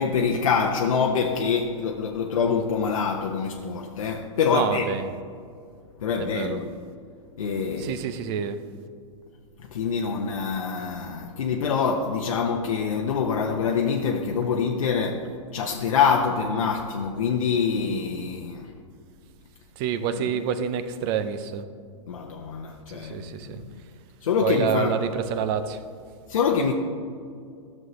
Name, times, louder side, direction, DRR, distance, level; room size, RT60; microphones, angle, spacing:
voice 1, 0.0-4.9 6.0-6.7 7.4-8.0 9.7-18.7 20.1-20.3 22.1-23.8 24.2-24.9 26.3-26.7, left 6 dB, 85° left, 0.7 m, -25 dB
voice 2, 4.5-5.1 6.2-6.6 7.8-8.6 19.8-21.6 22.9-23.6 24.4-25.8, right 8 dB, 45° right, 0.6 m, -27 dB
12.5 x 6.5 x 3.1 m
hypercardioid pair, 125°, 17 cm